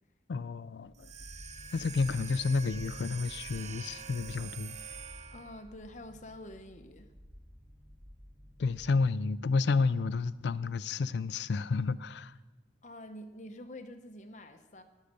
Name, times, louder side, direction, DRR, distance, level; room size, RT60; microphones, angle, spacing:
voice 1, 0.3-1.1 1.7-4.8 8.6-12.4, left 4 dB, 75° left, 16 dB, 0.4 m, -30 dB
sound 1, 0.8-9.2, equal, 10° right, 0.9 m, -52 dB
sound 2, 0.9-5.7, right 7 dB, 40° right, 0.5 m, -46 dB
voice 2, 5.3-7.1 12.8-14.8, left 1 dB, 40° left, 7 dB, 0.9 m, -47 dB
18.5 x 6.5 x 6.7 m, 1.2 s
head